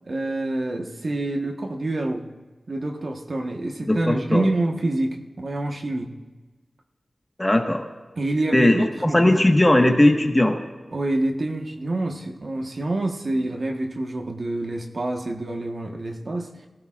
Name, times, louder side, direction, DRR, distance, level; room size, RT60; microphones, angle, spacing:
voice 1, 0.0-2.2 2.7-6.1 8.1-9.5 10.9-16.7, right 2 dB, 60° right, 2 dB, 1.4 m, -27 dB
voice 2, 3.9-4.4 7.4-7.8 8.5-8.8 9.1-10.6, left 1 dB, 20° left, 3 dB, 1.5 m, -18 dB
23.0 x 16.5 x 2.5 m, 1.2 s
wide cardioid pair, 75°, 0 cm